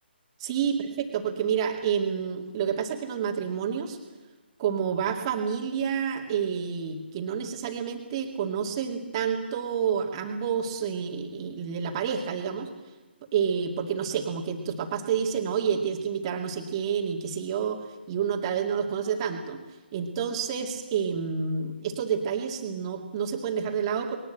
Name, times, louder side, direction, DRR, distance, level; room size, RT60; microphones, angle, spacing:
voice 1, 0.4-4.0 4.6-12.7 13.3-17.8 18.1-19.6 19.9-24.2, right 7 dB, 25° right, 2 dB, 2.4 m, -29 dB
21.0 x 20.0 x 7.9 m, 1.2 s
figure-of-eight pair, 140°, 6 cm